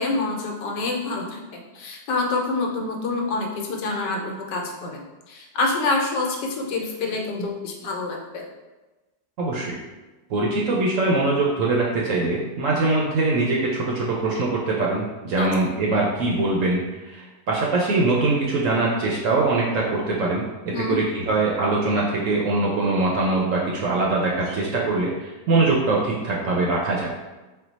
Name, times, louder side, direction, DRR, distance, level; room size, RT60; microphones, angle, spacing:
voice 1, 0.0-8.4 15.4-15.5 20.7-21.0, left 3 dB, 85° left, 1 dB, 1.3 m, -27 dB
voice 2, 9.4-9.8 10.3-27.1, right 2 dB, 70° right, -3 dB, 0.8 m, -23 dB
4.4 x 2.2 x 4.0 m, 1.2 s
omnidirectional pair, 1.8 m